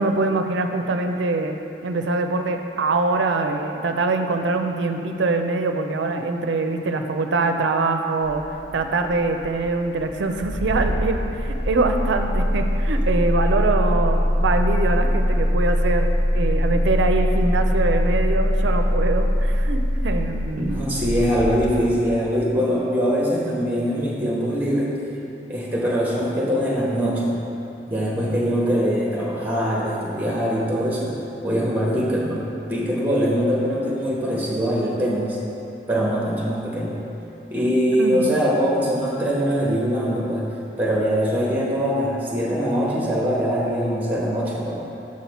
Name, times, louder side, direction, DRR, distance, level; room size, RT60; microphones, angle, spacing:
voice 1, 0.0-1.5 1.8-8.4 8.7-20.8 37.9-38.3, right 3 dB, 80° right, 6 dB, 0.5 m, -23 dB
Engine starting, 8.2-22.3, equal, 80° left, 0.9 m, -22 dB
voice 2, 20.5-24.9 25.5-27.3 27.9-31.1 31.4-35.4 35.9-37.0 37.5-40.5 40.8-44.8, equal, 10° right, -5 dB, 1.2 m, -22 dB
6.3 x 5.7 x 4.2 m, 2.8 s
head